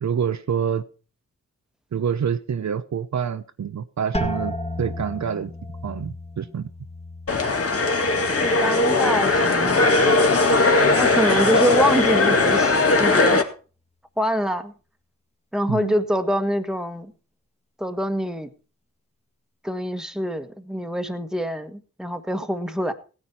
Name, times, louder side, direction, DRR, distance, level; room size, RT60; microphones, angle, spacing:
voice 1, 0.0-0.8 1.9-5.5 5.8-6.7 15.7-16.0, right 7 dB, 60° right, 10 dB, 0.8 m, -27 dB
sound 1, 4.1-9.8 10.1-10.8 11.3-11.8, left 1 dB, 20° left, 1.8 m, -35 dB
sound 2, 7.3-13.4, left 3 dB, 45° left, 1.9 m, -19 dB
voice 2, 8.4-9.9 11.0-13.5 14.2-14.7 15.5-17.1 17.8-18.5 19.6-22.9, equal, ahead, 7 dB, 1.5 m, -25 dB
16.0 x 9.7 x 4.4 m, 0.37 s
cardioid pair, 60°, 31 cm